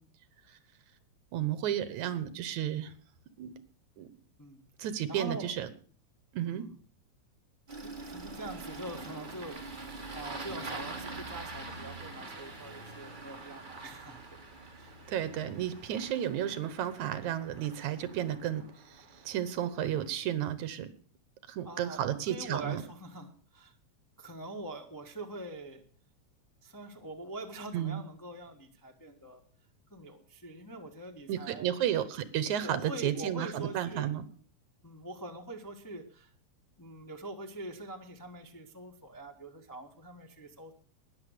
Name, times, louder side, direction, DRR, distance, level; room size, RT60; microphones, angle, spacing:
voice 1, 1.3-2.9 3.4-3.6 4.0-4.1 4.8-5.7 6.3-6.7 15.1-20.9 21.5-22.8 27.7-28.0 31.3-34.3, right 11 dB, 80° right, 14 dB, 2.5 m, -33 dB
voice 2, 4.4-5.5 6.4-6.7 7.8-14.4 14.8-15.0 21.6-22.0 22.3-23.7 24.2-25.8 26.6-29.4 29.9-31.7 32.6-34.1 34.8-36.3 36.8-40.7, right 1 dB, 15° left, 2 dB, 0.6 m, -44 dB
Engine starting, 7.7-20.1, right 3 dB, 20° right, 1.4 m, -45 dB
13.0 x 10.0 x 6.6 m, 0.43 s
omnidirectional pair, 3.4 m